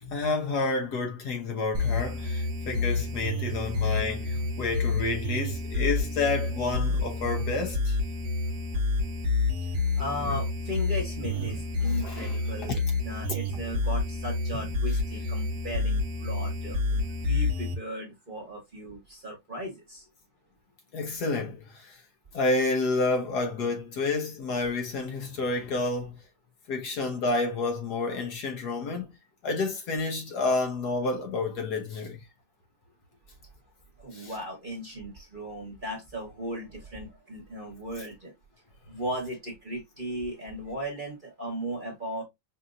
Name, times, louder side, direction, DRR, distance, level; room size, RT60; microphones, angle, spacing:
voice 1, 0.0-8.0 11.4-11.5 12.0-12.4 20.9-22.0 22.3-26.2 26.7-29.1 29.4-32.2 34.1-34.3, left 3 dB, 65° left, 1.3 m, -29 dB
sound 1, 1.7-17.7, left 3 dB, 55° right, 0.8 m, -29 dB
voice 2, 9.6-20.0 34.0-38.3 38.9-42.2, equal, 30° right, 1.3 m, -37 dB
5.4 x 2.7 x 2.5 m
omnidirectional pair, 2.0 m